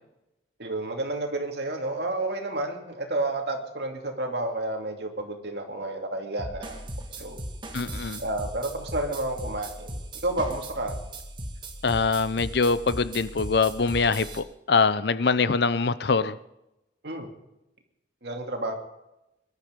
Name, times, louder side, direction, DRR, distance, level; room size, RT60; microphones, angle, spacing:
voice 1, 0.6-6.8 7.2-7.4 8.2-11.0 17.0-17.3 18.2-18.7, right 2 dB, 60° right, 3 dB, 2.6 m, -30 dB
sound 1, 6.4-14.4, right 1 dB, 25° right, 1.8 m, -38 dB
voice 2, 7.7-8.2 11.8-16.4, left 4 dB, 60° left, 15 dB, 0.7 m, -24 dB
22.0 x 12.0 x 5.2 m, 0.92 s
head